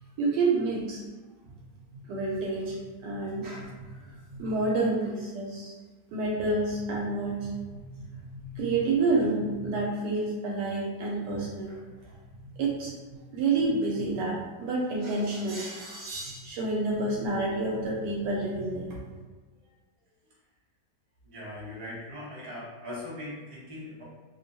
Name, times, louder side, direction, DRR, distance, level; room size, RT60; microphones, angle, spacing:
voice 1, 0.2-1.0 2.1-5.7 6.1-11.8 12.4-12.9 13.3-19.0, right 3 dB, 80° right, -4 dB, 1.1 m, -29 dB
voice 2, 21.3-24.0, left 1 dB, 45° right, -7 dB, 0.4 m, -40 dB
2.9 x 2.2 x 2.6 m, 1.3 s
omnidirectional pair, 1.8 m